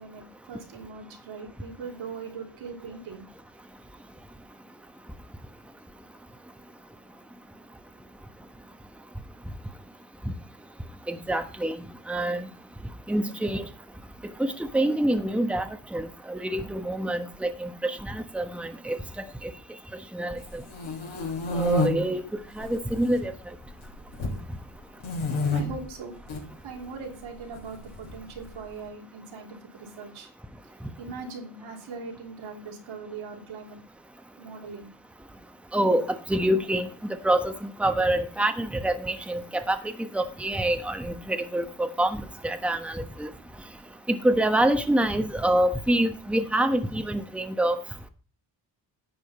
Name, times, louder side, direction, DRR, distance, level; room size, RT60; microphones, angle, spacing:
voice 1, 0.0-3.2 25.5-26.2 26.6-30.3 31.0-33.8 34.4-34.9, right 4 dB, 85° right, 0 dB, 3.1 m, -40 dB
voice 2, 11.1-11.8 12.1-12.5 13.1-13.7 14.4-15.6 15.9-19.0 19.4-19.5 20.1-20.4 21.5-22.2 22.6-23.3 35.7-42.2 42.4-43.3 44.1-47.8, right 1 dB, 5° right, 7 dB, 1.2 m, -26 dB
sound 1, 20.5-21.9 22.5-23.1 23.4-24.4 25.0-25.6 26.2-26.4 27.5-28.5, left 2 dB, 80° left, 4.4 m, -29 dB
11.0 x 7.5 x 4.2 m, 0.37 s
cardioid pair, 70°, 47 cm